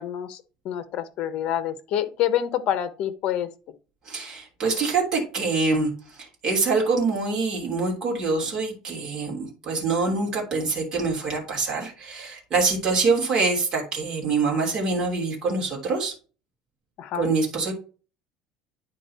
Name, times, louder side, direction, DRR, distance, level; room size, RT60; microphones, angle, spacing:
voice 1, 0.0-3.5 17.0-17.3, left 10 dB, 50° left, 1.1 m, -27 dB
voice 2, 4.1-5.9 6.2-16.1 17.1-17.7, right 4 dB, 35° right, 3.1 m, -25 dB
10.0 x 4.5 x 4.3 m
cardioid pair, 160°, 2 cm